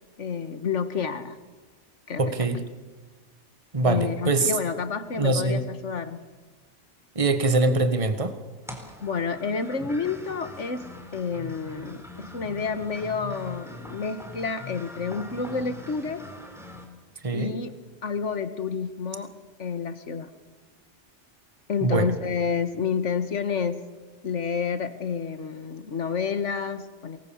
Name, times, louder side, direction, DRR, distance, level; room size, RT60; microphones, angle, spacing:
voice 1, 0.2-1.4 2.1-2.5 3.8-6.2 9.0-16.2 17.3-17.7 18.0-19.3 19.6-20.3 21.7-23.8 24.2-27.2, left 5 dB, 80° left, 10 dB, 1.9 m, -29 dB
voice 2, 2.2-2.6 3.7-4.5 5.2-5.6 7.1-8.3 17.2-17.5 21.8-22.1, right 3 dB, 30° right, 9 dB, 1.6 m, -23 dB
sound 1, 8.6-16.9, left 2 dB, ahead, 3.9 m, -42 dB
28.0 x 20.5 x 7.3 m, 1.3 s
omnidirectional pair, 1.2 m